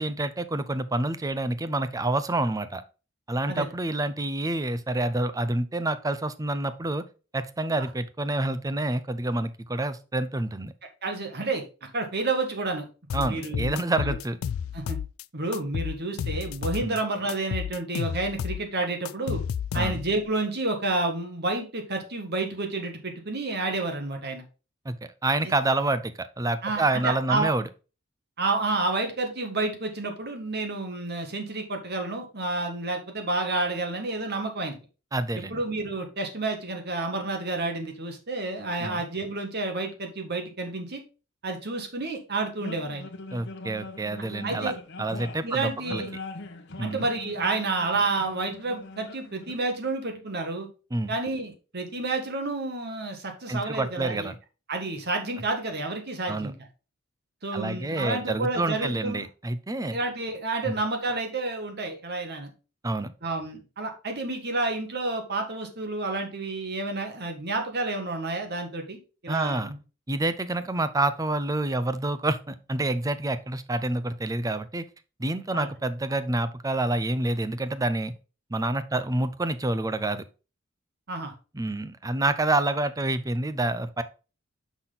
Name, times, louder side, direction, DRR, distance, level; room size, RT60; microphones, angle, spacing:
voice 1, 0.0-2.8 3.3-7.0 7.3-10.7 13.1-14.4 16.8-17.0 19.7-20.0 24.9-25.0 25.2-27.7 35.1-35.6 38.8-39.0 43.3-44.7 45.0-46.0 46.8-47.1 50.9-51.1 53.5-54.4 56.3-56.5 57.5-60.0 60.6-60.8 62.8-63.1 69.3-69.7 70.1-74.9 75.2-78.1 78.5-80.2 81.5-84.0, right 2 dB, 15° right, 12 dB, 0.6 m, -28 dB
voice 2, 11.0-11.6 11.9-12.9 13.1-14.1 14.7-15.0 15.3-19.4 19.7-24.4 26.6-27.5 28.4-34.8 35.5-41.0 41.4-43.1 44.4-44.7 45.4-46.1 46.8-50.7 51.1-54.3 54.7-56.5 57.4-59.2 59.9-62.5 63.2-69.8 75.5-75.7 81.1-81.3, right 2 dB, 55° right, 4 dB, 1.6 m, -30 dB
sound 1, 13.1-15.2 15.5-17.0 17.3-20.2, left 8 dB, 90° left, 0.3 m, -31 dB
sound 2, 42.6-49.6, left 2 dB, 60° left, 1.0 m, -42 dB
6.0 x 5.9 x 3.9 m, 0.33 s
head